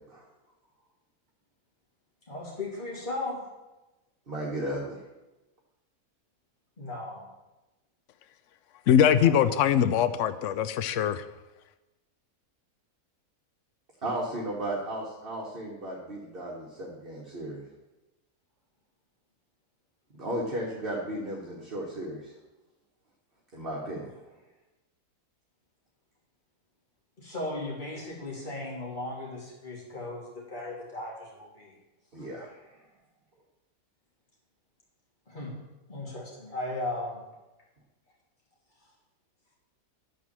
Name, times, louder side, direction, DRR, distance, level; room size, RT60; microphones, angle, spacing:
voice 1, 2.3-3.4 6.8-7.3 9.1-9.8 27.2-31.7 32.2-32.3 35.3-35.6 35.9-37.2, left 2 dB, 30° left, -4 dB, 2.8 m, -37 dB
voice 2, 4.3-5.0 14.0-17.6 20.2-22.3 23.5-24.1 32.1-32.8, right 1 dB, 35° right, -3 dB, 1.7 m, -35 dB
voice 3, 8.9-11.2, left 9 dB, 65° left, 12 dB, 0.8 m, -22 dB
12.0 x 4.7 x 7.3 m, 1.1 s
omnidirectional pair, 1.7 m